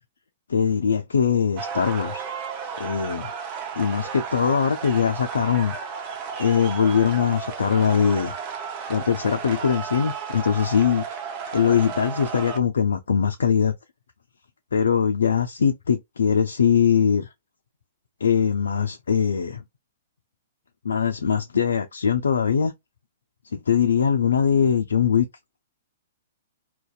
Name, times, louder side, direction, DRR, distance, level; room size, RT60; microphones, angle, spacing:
voice 1, 0.5-2.2 2.8-3.3 3.8-5.8 6.4-8.3 8.9-11.0 11.5-13.7 14.7-17.3 18.2-19.6 20.8-22.7 23.5-25.3, left 7 dB, 80° left, 0.3 m, -21 dB
sound 1, 1.6-12.6, right 6 dB, 40° right, 0.6 m, -33 dB
2.5 x 2.1 x 2.3 m
hypercardioid pair, 120°, 0 cm